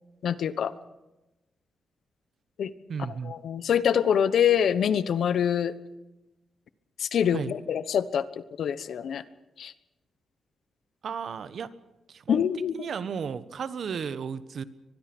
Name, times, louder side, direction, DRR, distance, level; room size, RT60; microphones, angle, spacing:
voice 1, 0.2-0.7 2.6-2.7 3.2-5.7 7.0-9.2 9.6-9.7 12.3-12.9, left 8 dB, 70° left, 15 dB, 1.0 m, -25 dB
voice 2, 2.9-3.3 7.3-7.5 11.0-11.7 12.1-12.4 12.7-14.6, right 6 dB, 55° right, 14 dB, 1.1 m, -34 dB
24.0 x 21.0 x 6.1 m, 1.0 s
wide cardioid pair, 135°, 0 cm